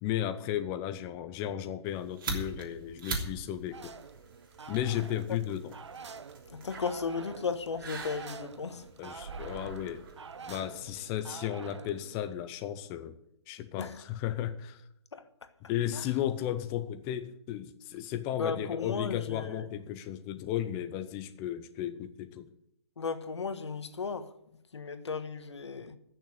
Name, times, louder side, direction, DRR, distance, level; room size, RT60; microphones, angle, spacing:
voice 1, 0.0-3.9 4.7-5.8 9.0-10.0 10.5-13.2 13.5-14.8 15.7-22.5, left 11 dB, 20° left, 0.5 m, -34 dB
sound 1, 1.8-11.0, right 4 dB, 50° right, 3.1 m, -43 dB
sound 2, 3.7-12.3, right 5 dB, 90° right, 0.9 m, -47 dB
voice 2, 6.4-8.9 13.8-14.0 15.1-15.5 15.9-16.1 18.3-19.7 23.0-24.3 24.7-26.0, left 5 dB, 85° left, 1.4 m, -35 dB
14.0 x 6.8 x 8.8 m
hypercardioid pair, 160°, 14 cm